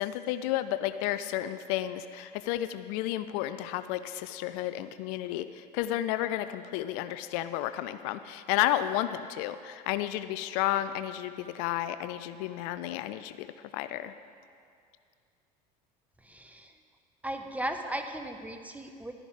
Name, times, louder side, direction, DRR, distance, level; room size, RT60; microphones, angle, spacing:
voice 1, 0.0-13.5 13.7-14.1, left 13 dB, 70° left, 12 dB, 0.5 m, -32 dB
voice 2, 16.2-16.7 17.2-19.1, right 1 dB, 5° right, 5 dB, 1.1 m, -36 dB
12.5 x 10.0 x 4.9 m, 2.3 s
hypercardioid pair, 75°, 20 cm